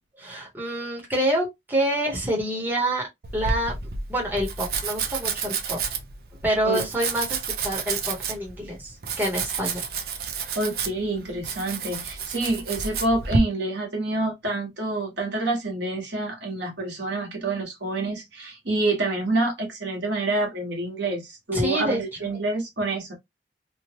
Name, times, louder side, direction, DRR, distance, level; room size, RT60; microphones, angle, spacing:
voice 1, 0.2-3.1 3.3-3.8 4.1-5.8 6.4-9.9 21.5-22.3, right 1 dB, 10° right, 1.0 m, -27 dB
Domestic sounds home sounds, 3.2-13.4, right 5 dB, 55° right, 0.5 m, -30 dB
voice 2, 10.5-23.1, right 2 dB, 75° right, 1.3 m, -27 dB
3.1 x 2.3 x 2.9 m
head